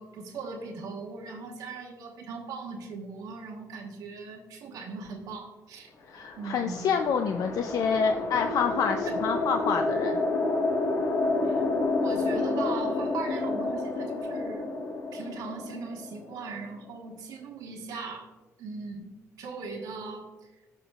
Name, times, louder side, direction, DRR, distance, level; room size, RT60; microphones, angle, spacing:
voice 1, 0.0-5.9 6.4-6.9 11.4-11.6 11.9-14.7 15.1-18.3 18.6-19.1 19.4-20.3, right 4 dB, 85° right, 1 dB, 1.2 m, -39 dB
voice 2, 6.1-10.2, left 6 dB, 75° left, 6 dB, 0.5 m, -27 dB
sound 1, 6.3-16.7, left 2 dB, 55° left, 1.4 m, -29 dB
15.5 x 5.6 x 2.4 m, 1.2 s
cardioid pair, 120°, 6 cm